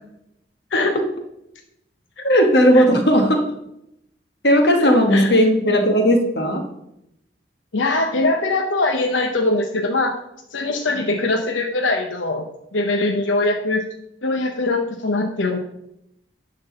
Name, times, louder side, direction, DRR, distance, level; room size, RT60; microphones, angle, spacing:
voice 1, 2.2-3.4 4.4-6.7, equal, 60° left, 4 dB, 1.3 m, -16 dB
voice 2, 4.8-5.3 7.7-10.2 10.5-12.4 12.7-13.8 14.2-15.6, left 2 dB, 90° left, 4 dB, 0.8 m, -22 dB
10.5 x 3.9 x 6.6 m, 0.82 s
head